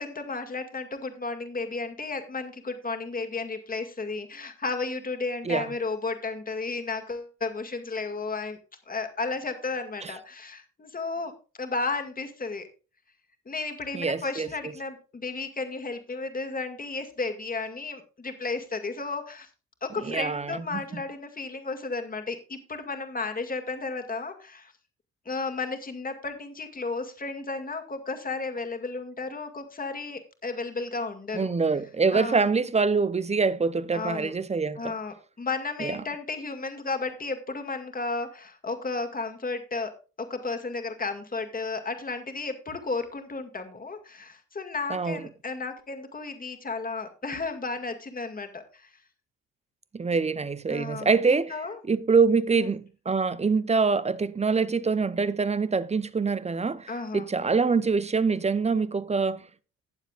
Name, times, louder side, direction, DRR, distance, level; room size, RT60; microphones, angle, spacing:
voice 1, 0.0-8.6 8.9-11.3 11.6-12.7 13.5-19.5 19.8-24.7 25.3-31.5 32.1-32.4 33.9-34.3 34.8-39.9 40.2-48.9 50.7-51.8 52.5-52.7 56.9-57.3, left 3 dB, 25° left, 2.1 m, -33 dB
voice 2, 13.9-14.5 20.1-21.0 31.3-34.9 35.8-36.0 44.9-45.3 49.9-51.5 51.9-59.5, right 4 dB, 20° right, 0.7 m, -25 dB
19.0 x 7.3 x 2.4 m
hypercardioid pair, 60°, 33 cm